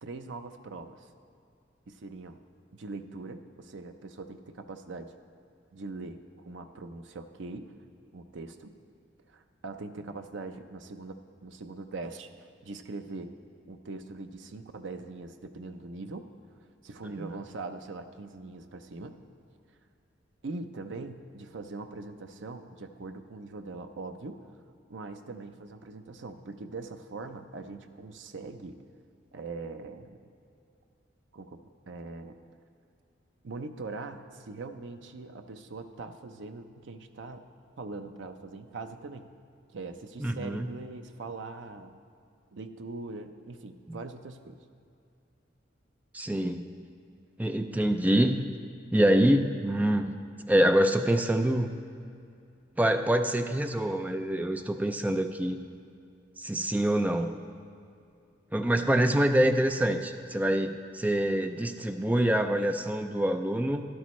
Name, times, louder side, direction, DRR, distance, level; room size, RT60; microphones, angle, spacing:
voice 1, 0.0-1.1 1.9-2.4 2.7-5.1 5.7-7.7 8.1-8.7 9.3-12.3 12.6-13.3 13.7-16.3 16.8-19.2 20.4-24.4 24.9-28.8 29.3-30.2 31.3-32.4 33.4-37.4 37.8-39.3 39.7-41.9 42.5-44.6, right 3 dB, 75° right, 7 dB, 0.6 m, -41 dB
voice 2, 40.2-40.7 46.1-46.7 47.4-48.4 48.9-50.1 50.5-51.8 52.8-55.6 56.4-57.4 58.5-63.8, right 1 dB, 10° right, 7 dB, 0.4 m, -25 dB
12.5 x 11.5 x 3.1 m, 2.5 s
head